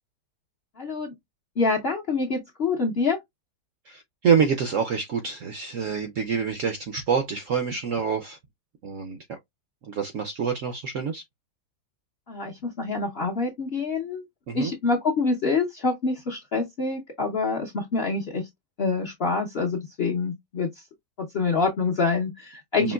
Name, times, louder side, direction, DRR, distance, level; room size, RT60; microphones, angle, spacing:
voice 1, 0.8-1.1 1.6-3.2 12.3-14.2 14.5-18.5 18.8-20.7 21.2-22.9, left 4 dB, 55° left, 0.6 m, -26 dB
voice 2, 3.9-8.4 8.8-9.2 9.9-11.2 14.5-14.7 22.8-22.9, right 6 dB, 70° right, 0.7 m, -26 dB
5.1 x 2.9 x 2.2 m
omnidirectional pair, 1.9 m